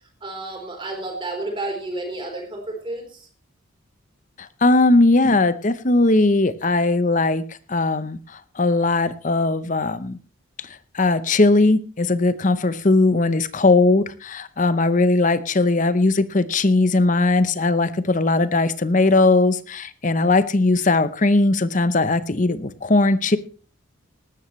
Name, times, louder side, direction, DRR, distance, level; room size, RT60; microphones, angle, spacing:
voice 1, 0.2-3.3, right 2 dB, 25° right, 3 dB, 3.9 m, -31 dB
voice 2, 4.4-7.4 7.7-10.2 10.6-23.4, left 2 dB, 35° left, 13 dB, 0.8 m, -19 dB
18.5 x 13.0 x 3.2 m, 0.39 s
head